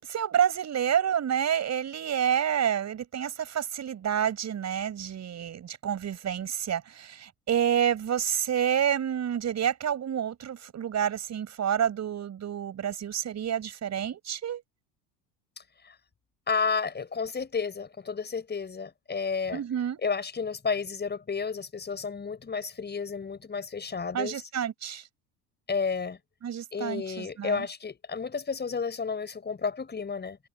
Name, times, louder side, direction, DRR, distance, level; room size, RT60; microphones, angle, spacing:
voice 1, 0.0-14.6 19.5-20.0 24.1-25.0 26.4-27.7, right 9 dB, 40° right, 6.4 m, -29 dB
voice 2, 16.5-19.6 20.0-24.4 25.7-26.2 26.7-30.4, left 5 dB, 25° left, 6.0 m, -31 dB
hypercardioid pair, 80°, 41 cm